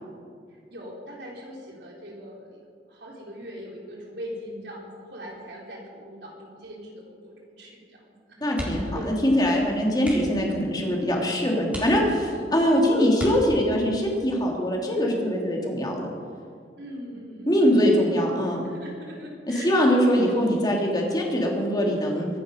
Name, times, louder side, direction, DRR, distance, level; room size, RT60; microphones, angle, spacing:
voice 1, 0.5-2.6 2.9-9.1 16.8-18.2 18.6-20.6, equal, 70° right, -2 dB, 4.2 m, -40 dB
voice 2, 8.4-16.1 17.5-18.7 19.5-22.3, equal, 25° left, -1 dB, 3.1 m, -22 dB
sound 1, 8.5-9.0 9.3-9.5 10.0-10.5 11.1-11.2 11.7-12.4 13.1-13.9 15.5-15.8 16.2-16.3, equal, 10° right, 3.7 m, -36 dB
24.0 x 11.0 x 5.2 m, 2.2 s
head